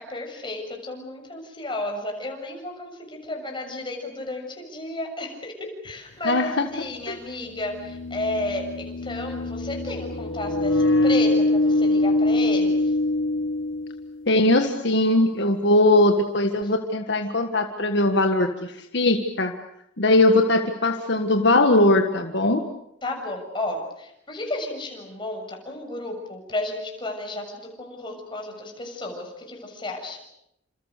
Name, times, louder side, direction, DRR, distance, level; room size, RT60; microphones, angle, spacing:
voice 1, 0.0-12.9 16.6-16.7 23.0-30.2, left 2 dB, 25° left, 2 dB, 6.9 m, -33 dB
sound 1, 5.9-6.0 7.5-14.3, left 2 dB, 80° left, 1.2 m, -23 dB
voice 2, 6.2-6.7 7.1-7.2 14.3-19.5 20.0-22.6, left 2 dB, 60° left, 5 dB, 1.7 m, -20 dB
29.5 x 27.0 x 6.7 m, 0.78 s
head